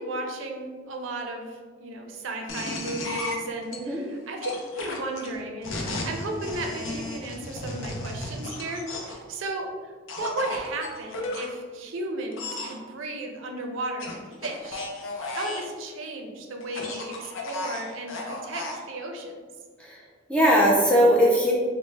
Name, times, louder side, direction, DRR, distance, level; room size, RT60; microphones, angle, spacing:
voice 1, 0.0-14.9 15.3-19.4, right 2 dB, 75° right, 3 dB, 0.4 m, -34 dB
sound 1, 2.5-3.8 4.4-9.2 10.1-11.5 12.3-12.7 14.0-15.7 16.6-18.8, left 2 dB, 80° left, 0.5 m, -34 dB
voice 2, 3.7-4.0 19.8-20.0 20.3-21.5, equal, 5° left, -4 dB, 0.3 m, -19 dB
3.2 x 2.0 x 3.2 m, 1.5 s
head